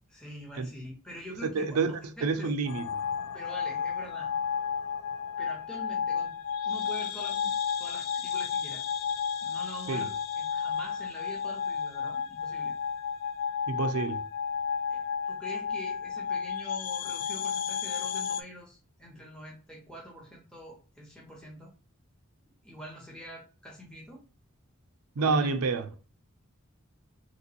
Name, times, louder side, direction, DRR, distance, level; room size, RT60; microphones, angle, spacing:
voice 1, 0.1-2.5 3.3-4.3 5.4-6.4 6.6-7.5 7.8-8.8 9.4-12.7 14.9-21.7 22.6-24.2 25.2-25.5, equal, 5° left, 0.7 m, -45 dB
voice 2, 1.5-2.9 9.9-10.1 13.7-14.2 25.2-26.1, right 4 dB, 85° right, 0.4 m, -28 dB
sound 1, 2.6-18.4, left 7 dB, 90° left, 0.4 m, -32 dB
3.3 x 2.9 x 2.8 m
head